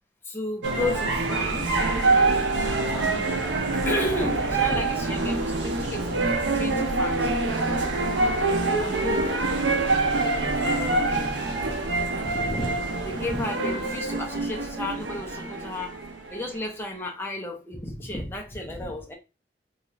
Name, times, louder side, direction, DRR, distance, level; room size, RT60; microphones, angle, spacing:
voice 1, 0.2-1.8 2.9-7.3 8.8-9.3 10.6-11.3 12.2-16.0 16.3-19.1, left 1 dB, 10° left, 0.6 m, -33 dB
sound 1, 0.6-16.8, right 3 dB, 80° right, 0.6 m, -25 dB
2.5 x 2.4 x 3.1 m
head